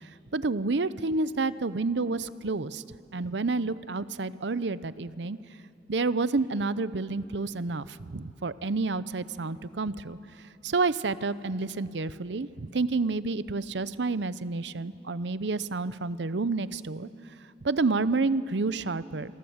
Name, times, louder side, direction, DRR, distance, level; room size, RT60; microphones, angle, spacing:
voice 1, 0.3-2.8 3.1-5.4 5.9-10.2 10.6-17.1 17.6-19.3, right 3 dB, 70° right, 16 dB, 0.7 m, -29 dB
27.0 x 23.0 x 8.0 m, 2.8 s
head